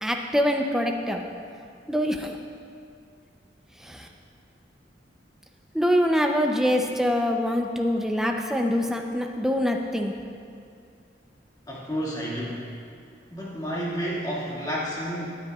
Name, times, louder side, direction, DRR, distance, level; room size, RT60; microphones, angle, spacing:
voice 1, 0.0-1.2 1.9-2.4 3.8-4.1 5.7-10.1, equal, 5° right, 2 dB, 0.6 m, -24 dB
voice 2, 11.7-12.7 13.3-15.3, equal, 20° left, -6 dB, 2.0 m, -30 dB
17.0 x 9.7 x 2.4 m, 2.4 s
head